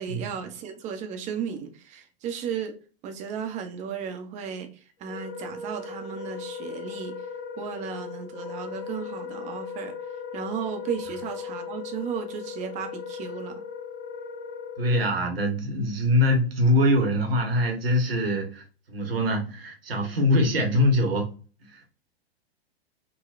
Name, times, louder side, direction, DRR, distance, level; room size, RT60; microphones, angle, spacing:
voice 1, 0.0-2.8 3.0-4.7 5.0-7.2 7.6-9.9 10.3-13.6, right 7 dB, 25° right, 0.6 m, -34 dB
Wind instrument woodwind instrument, 5.0-15.1, left 6 dB, 35° left, 1.4 m, -38 dB
voice 2, 14.8-18.6 18.9-21.3 21.7-21.8, left 1 dB, 70° right, 1.1 m, -23 dB
3.9 x 2.1 x 2.4 m
figure-of-eight pair, 100°, 31 cm